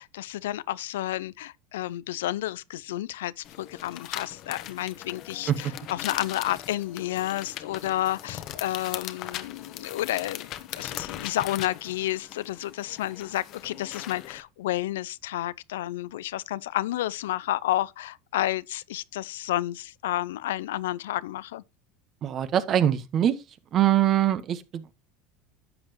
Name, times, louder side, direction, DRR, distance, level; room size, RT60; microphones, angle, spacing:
voice 1, 0.0-21.6, left 14 dB, 85° left, 0.4 m, -31 dB
sound 1, 3.4-14.4, left 12 dB, 55° left, 1.1 m, -40 dB
voice 2, 22.2-23.3 23.7-24.9, right 11 dB, 45° right, 1.3 m, -23 dB
11.5 x 7.8 x 3.1 m
hypercardioid pair, 95°, 0 cm